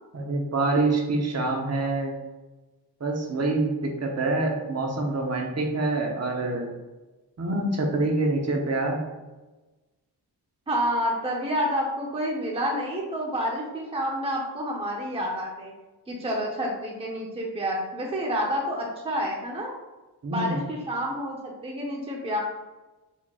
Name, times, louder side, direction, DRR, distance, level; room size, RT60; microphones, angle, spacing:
voice 1, 0.1-2.1 3.0-6.7 7.4-9.0 20.2-20.6, right 2 dB, 40° right, 1 dB, 0.9 m, -26 dB
voice 2, 10.7-15.7 16.1-19.7 20.3-22.4, equal, 15° right, -2 dB, 0.7 m, -29 dB
4.5 x 4.4 x 2.4 m, 1.2 s
wide cardioid pair, 110°, 40 cm